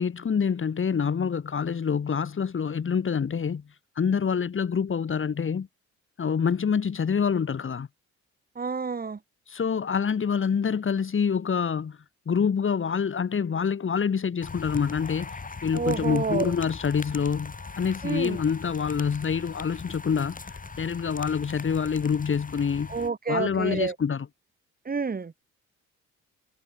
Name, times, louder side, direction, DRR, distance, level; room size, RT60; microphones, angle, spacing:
voice 1, 0.0-3.6 4.0-5.7 6.2-7.9 9.5-12.0 12.3-15.3 15.6-20.4 20.8-22.9 23.3-24.3, left 6 dB, 40° left, 3.5 m, -26 dB
voice 2, 8.6-9.2 15.7-16.5 18.0-18.4 22.9-24.0 24.9-25.3, right 5 dB, 30° right, 2.3 m, -29 dB
sound 1, 14.4-23.1, left 4 dB, 25° left, 5.7 m, -40 dB
cardioid pair, 90°, 30 cm